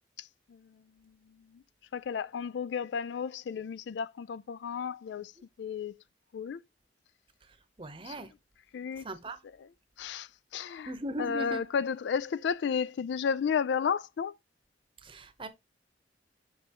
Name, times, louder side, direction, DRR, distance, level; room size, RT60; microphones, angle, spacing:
voice 1, 0.2-1.1 1.5-1.6 1.9-5.3 5.6-6.0 6.3-6.6 8.0-8.3 8.7-9.1 9.4-9.7 10.0-10.9 11.2-14.3, left 6 dB, 70° left, 0.3 m, -33 dB
voice 2, 7.8-8.3 9.0-9.4 10.9-11.6 15.0-15.5, right 1 dB, 30° right, 0.8 m, -38 dB
7.5 x 5.5 x 2.9 m
head